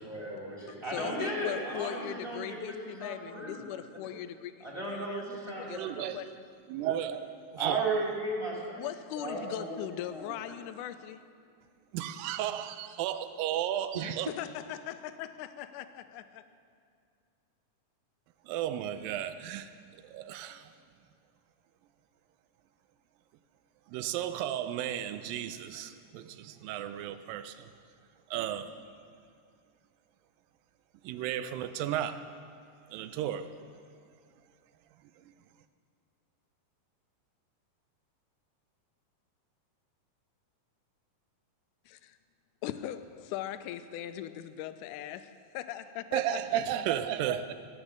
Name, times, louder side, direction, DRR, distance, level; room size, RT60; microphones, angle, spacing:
voice 1, 0.1-3.6 4.6-6.0 6.7-7.2 7.6-8.9 9.2-9.8 10.1-10.3, equal, 15° right, 2.6 m, -37 dB
voice 2, 0.7-4.7 4.9-5.2 5.6-6.4 8.8-11.2 13.9-16.4 41.9-42.2 42.6-46.8, left 11 dB, 80° left, 2.0 m, -40 dB
voice 3, 5.7-6.2 6.7-7.2 7.5-8.1 11.9-14.3 18.5-19.7 20.1-20.7 23.9-27.7 28.3-28.8 31.0-32.2 32.9-33.5 46.1-47.5, right 11 dB, 90° right, 2.4 m, -33 dB
15.0 x 9.5 x 6.4 m
omnidirectional pair, 3.9 m